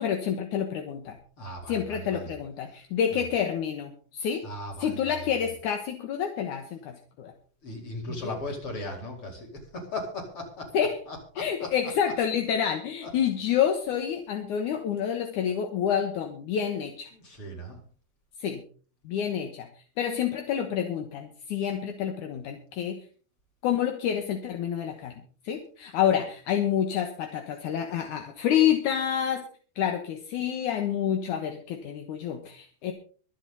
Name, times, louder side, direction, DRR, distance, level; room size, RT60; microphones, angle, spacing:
voice 1, 0.0-1.2 1.7-4.4 4.8-7.3 8.2-8.3 10.7-11.0 11.4-17.1 18.4-18.6 19.0-19.7 20.0-23.0 23.6-25.1 25.4-29.5 29.8-32.9, left 9 dB, 65° left, 5 dB, 2.3 m, -28 dB
voice 2, 1.4-2.3 3.1-3.2 4.4-5.5 7.6-10.7 11.1-11.7 13.0-13.1 17.1-17.8, left 1 dB, 35° left, 0 dB, 4.9 m, -38 dB
24.0 x 8.3 x 4.1 m, 0.43 s
omnidirectional pair, 4.7 m